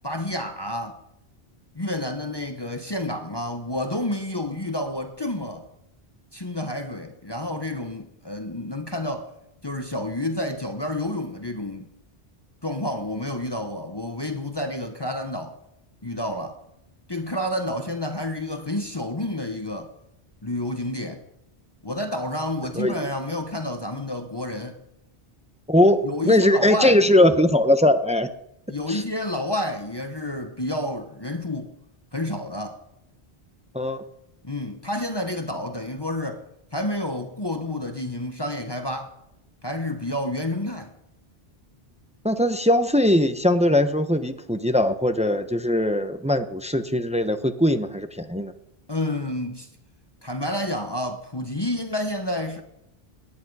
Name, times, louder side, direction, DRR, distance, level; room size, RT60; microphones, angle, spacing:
voice 1, 0.0-1.0 1.7-5.7 6.3-9.3 9.6-11.9 12.6-15.5 16.0-16.6 17.1-19.9 20.4-21.2 21.8-24.8 26.0-27.1 28.7-31.7 32.1-32.8 34.4-36.4 36.7-39.1 39.6-40.9 48.9-49.7 50.2-52.6, left 1 dB, 25° left, 1.0 m, -29 dB
voice 2, 22.7-23.1 25.7-28.3 28.9-29.0 33.7-34.0 42.2-48.5, left 1 dB, 5° right, 0.7 m, -20 dB
18.5 x 10.0 x 4.8 m
omnidirectional pair, 1.0 m